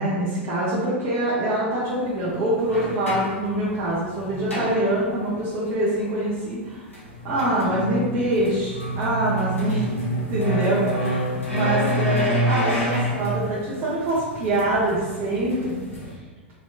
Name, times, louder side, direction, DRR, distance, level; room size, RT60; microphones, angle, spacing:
voice 1, 0.0-6.9 7.2-9.9 10.3-15.8, right 1 dB, 30° right, -9 dB, 0.8 m, -24 dB
sound 1, 1.9-2.0 2.5-5.4 6.7-16.1, equal, 85° left, 1.0 m, -28 dB
3.2 x 3.0 x 2.3 m, 1.3 s
figure-of-eight pair, 95°, 7 cm